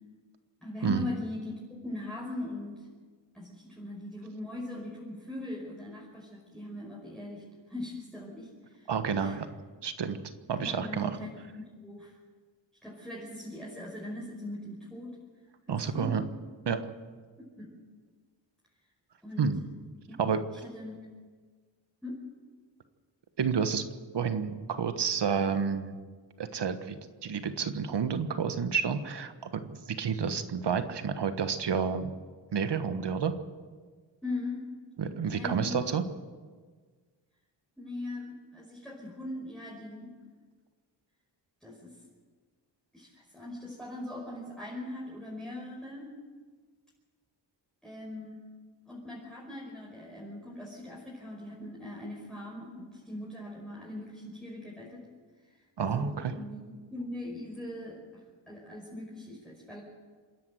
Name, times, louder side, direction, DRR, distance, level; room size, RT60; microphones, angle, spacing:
voice 1, 0.6-2.9 3.3-8.9 9.2-9.4 10.6-12.2 12.8-15.2 15.7-16.2 17.6-17.8 19.2-19.5 20.5-21.0 22.0-22.2 34.2-34.7 35.3-35.8 37.8-40.2 41.6-42.0 42.9-46.1 47.8-48.4 48.9-55.0 55.5-56.6 56.9-59.8, left 1 dB, ahead, -4 dB, 5.4 m, -40 dB
voice 2, 8.9-9.5 9.8-10.2 10.5-11.1 15.7-16.2 16.6-16.9 19.4-19.6 20.2-20.4 23.4-23.8 24.1-26.0 26.4-32.1 32.5-33.4 35.0-36.0 55.8-56.3, right 6 dB, 65° right, 10 dB, 1.5 m, -30 dB
26.5 x 10.5 x 9.3 m, 1.5 s
cardioid pair, 65°, 45 cm